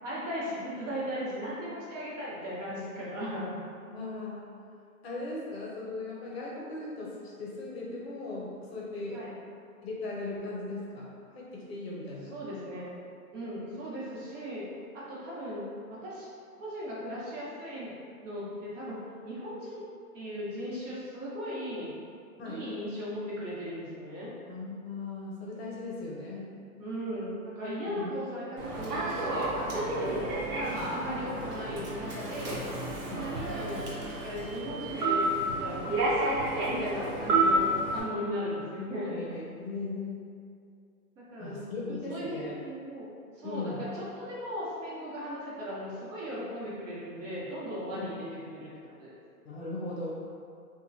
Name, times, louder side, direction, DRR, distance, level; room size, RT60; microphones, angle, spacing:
voice 1, 0.0-3.6 9.1-9.3 12.3-12.9 13.3-14.6 14.9-16.3 16.6-17.9 18.2-19.8 20.1-21.9 22.4-24.3 26.8-32.6 33.1-39.1 41.2-43.1 43.4-49.1, equal, 55° right, -7 dB, 1.1 m, -37 dB
voice 2, 3.9-4.4 5.0-9.3 9.8-12.4 22.4-22.7 24.5-26.5 27.9-28.1 33.0-33.3 39.1-40.4 41.4-42.6 43.4-43.9 47.9-48.1 49.4-50.1, left 2 dB, 45° left, -5 dB, 0.6 m, -38 dB
Human voice / Subway metro underground, 28.6-38.0, right 2 dB, 90° right, 0.9 m, -30 dB
2.9 x 2.2 x 2.5 m, 2.4 s
hypercardioid pair, 145°, 45 cm